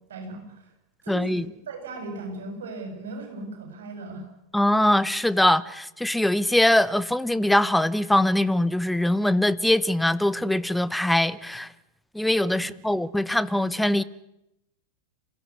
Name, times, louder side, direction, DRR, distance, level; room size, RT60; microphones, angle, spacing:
voice 1, 0.1-0.7 1.0-4.3 12.5-12.8, right 2 dB, 60° right, 7.2 m, -37 dB
voice 2, 1.1-1.4 4.5-11.7 12.1-14.0, left 1 dB, 5° left, 1.0 m, -22 dB
27.0 x 16.0 x 9.7 m
figure-of-eight pair, 90°, 0 cm